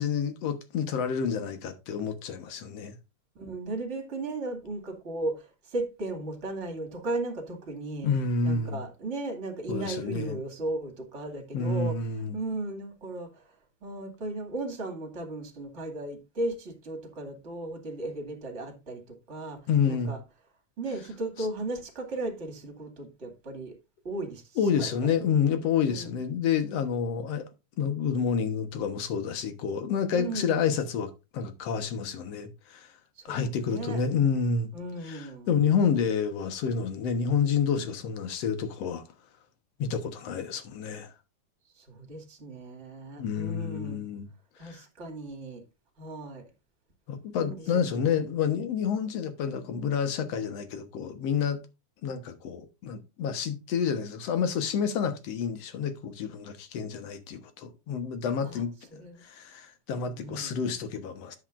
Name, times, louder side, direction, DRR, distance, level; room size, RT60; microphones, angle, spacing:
voice 1, 0.0-3.0 8.0-8.8 9.7-10.4 11.5-12.4 19.7-20.1 24.6-27.5 27.8-32.9 33.3-34.7 35.1-39.0 39.8-41.1 43.2-44.3 44.6-44.8 47.1-51.6 52.0-58.7 59.2-61.4, left 6 dB, 60° left, 2.1 m, -29 dB
voice 2, 3.3-8.1 8.4-20.2 20.8-23.8 24.0-25.1 25.9-26.1 30.1-30.5 33.2-34.0 34.7-35.5 41.8-44.0 44.6-45.6 46.0-46.4 47.3-48.2 58.4-58.6 58.9-59.2 60.1-60.5, right 2 dB, 25° right, 2.3 m, -36 dB
10.0 x 8.0 x 2.5 m
omnidirectional pair, 3.5 m